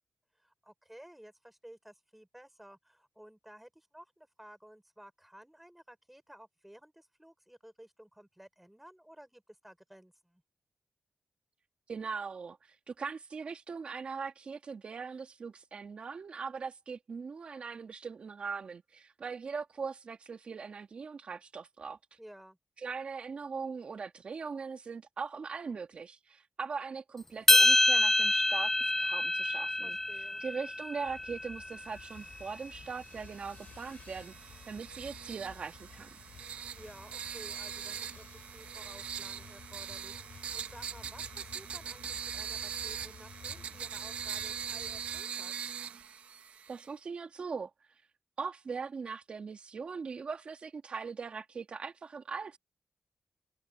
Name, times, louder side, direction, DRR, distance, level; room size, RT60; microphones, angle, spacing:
voice 1, 0.3-10.4 22.2-22.6 29.8-30.4 36.5-45.5, equal, 5° right, 4.9 m, -54 dB
voice 2, 11.9-22.2 22.8-30.0 30.4-36.2 46.7-47.7 48.4-52.6, right 5 dB, 60° right, 1.8 m, -40 dB
sound 1, 27.5-31.9, left 1 dB, 15° left, 0.4 m, -27 dB
sound 2, 31.0-45.2, left 7 dB, 75° left, 5.3 m, -54 dB
sound 3, 32.0-46.9, right 8 dB, 85° right, 1.0 m, -42 dB
cardioid pair, 60°, 2 cm